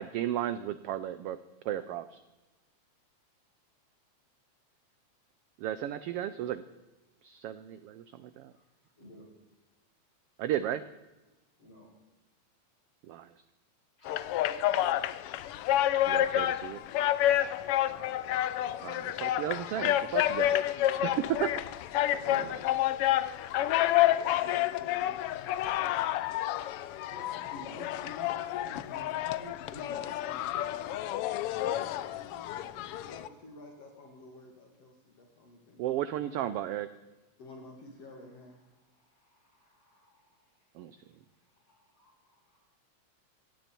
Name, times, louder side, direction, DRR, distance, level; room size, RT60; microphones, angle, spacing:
voice 1, 0.0-1.4 1.7-2.2 5.6-6.6 7.2-8.5 10.4-10.8 13.1-13.3 16.1-16.8 18.8-20.6 21.4-21.5 35.8-36.9 40.8-41.0, right 12 dB, 80° right, 13 dB, 1.3 m, -34 dB
voice 2, 8.9-9.2 11.6-11.9 14.0-14.2 17.7-18.0 22.2-22.5 27.0-30.1 38.9-40.4 41.7-42.6, equal, 35° left, -3 dB, 6.8 m, -51 dB
sound 1, 14.1-33.3, left 13 dB, 85° left, 1.3 m, -29 dB
voice 3, 21.0-21.5 22.1-22.5 24.4-25.7 29.7-35.9 37.4-38.6, left 2 dB, 60° left, 2 dB, 3.0 m, -50 dB
17.5 x 16.0 x 4.4 m, 1.1 s
omnidirectional pair, 3.3 m